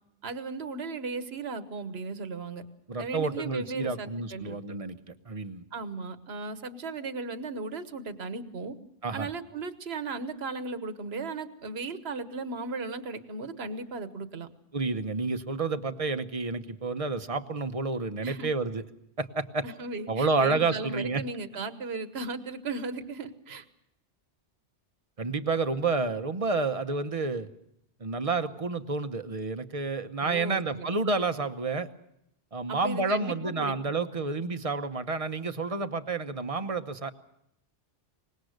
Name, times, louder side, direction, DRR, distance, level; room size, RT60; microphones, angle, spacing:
voice 1, 0.2-2.6 3.0-4.8 5.7-8.7 9.1-14.5 18.2-18.5 19.6-23.6 30.2-30.9 32.7-33.9, right 3 dB, 60° right, 10 dB, 1.5 m, -36 dB
voice 2, 2.9-5.0 5.3-5.6 9.0-9.3 14.7-18.8 19.2-19.6 20.1-21.2 25.2-27.5 28.0-31.9 32.5-37.1, right 3 dB, 30° right, 9 dB, 1.0 m, -30 dB
24.5 x 20.5 x 6.5 m, 0.79 s
omnidirectional pair, 1.2 m